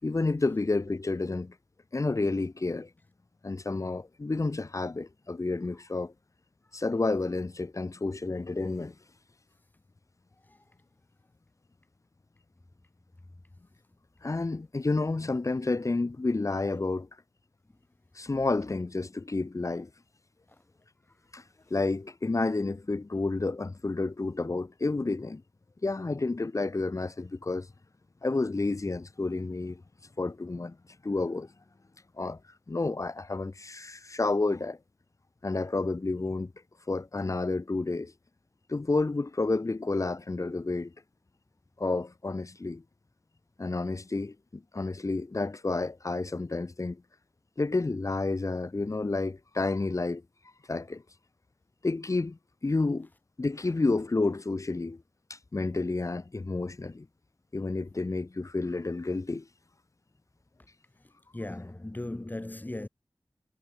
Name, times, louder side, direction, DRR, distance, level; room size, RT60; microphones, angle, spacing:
voice 1, 0.0-1.5 1.9-2.9 3.4-6.1 6.7-8.9 14.2-17.1 18.1-19.9 21.3-21.4 21.7-25.4 25.8-27.7 28.2-29.8 30.2-30.8 31.0-31.5 32.2-32.4 32.7-34.8 35.4-36.5 36.9-38.1 38.7-40.9 41.8-42.8 43.6-47.0 47.6-50.2 50.7-51.0 51.8-53.1 53.4-55.0 55.3-57.1 57.5-59.5, left 3 dB, 50° left, 6.5 m, -30 dB
voice 2, 61.3-62.9, left 1 dB, 25° left, 7.6 m, -37 dB
wide cardioid pair, 65°, 7 cm